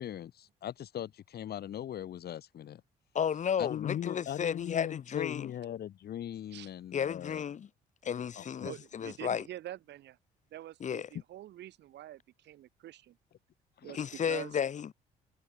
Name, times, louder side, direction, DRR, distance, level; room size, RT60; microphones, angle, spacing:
voice 1, 0.0-2.8 3.6-7.4 8.4-8.7 13.8-14.0, left 10 dB, 60° left, 1.5 m, -39 dB
voice 2, 3.1-5.5 6.9-7.7 8.0-9.4 10.8-11.1 13.9-14.9, left 8 dB, 40° left, 0.8 m, -33 dB
voice 3, 8.6-10.2 10.5-13.2 13.8-14.5, right 13 dB, 70° right, 3.2 m, -46 dB
supercardioid pair, 70°, 19 cm